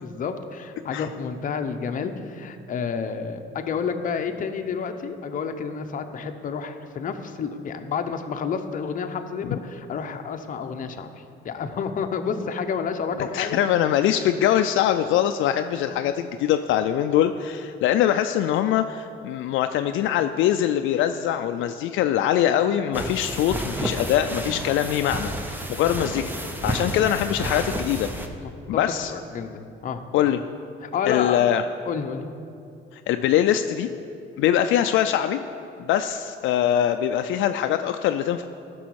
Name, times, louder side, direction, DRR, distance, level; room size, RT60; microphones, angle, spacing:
voice 1, 0.0-11.1 11.4-13.6 15.9-16.0 28.4-28.5 28.8-30.0 30.8-31.6 31.9-32.3, left 6 dB, 40° left, 6 dB, 0.7 m, -30 dB
voice 2, 13.3-28.1 28.7-29.1 30.1-30.4 31.1-31.6 32.9-33.9 34.4-35.4 35.8-38.4, left 11 dB, 75° left, 8 dB, 0.4 m, -23 dB
sound 1, 22.9-28.3, right 1 dB, 10° right, 0.7 m, -31 dB
14.5 x 6.2 x 4.7 m, 2.5 s
cardioid pair, 120°, 20 cm